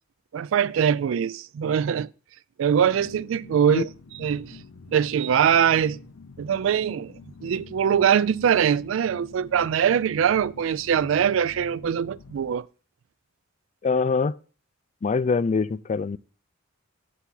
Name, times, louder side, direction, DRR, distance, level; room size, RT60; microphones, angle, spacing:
voice 1, 0.3-2.1 2.6-3.9 4.2-4.6 4.9-6.0 6.4-7.1 7.4-12.7, right 8 dB, 70° right, 0.3 m, -22 dB
sound 1, 2.7-12.6, left 4 dB, 80° left, 0.6 m, -47 dB
voice 2, 13.8-14.3 15.0-16.2, left 4 dB, 35° left, 0.3 m, -24 dB
8.4 x 6.9 x 3.8 m
head